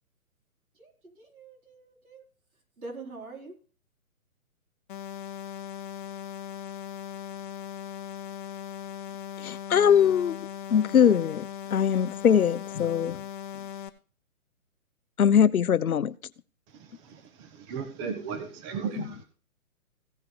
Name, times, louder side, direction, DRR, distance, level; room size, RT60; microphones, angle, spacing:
voice 1, 0.7-2.3 2.5-3.6 11.7-11.8, right 3 dB, 75° right, 4.5 m, -45 dB
sound 1, 4.9-13.9, left 9 dB, 35° left, 0.9 m, -39 dB
voice 2, 9.4-10.4 10.7-13.2 15.2-16.1, left 8 dB, 80° left, 0.7 m, -22 dB
voice 3, 16.7-19.2, right 6 dB, 20° right, 1.3 m, -36 dB
16.0 x 5.9 x 4.6 m
figure-of-eight pair, 140°, 43 cm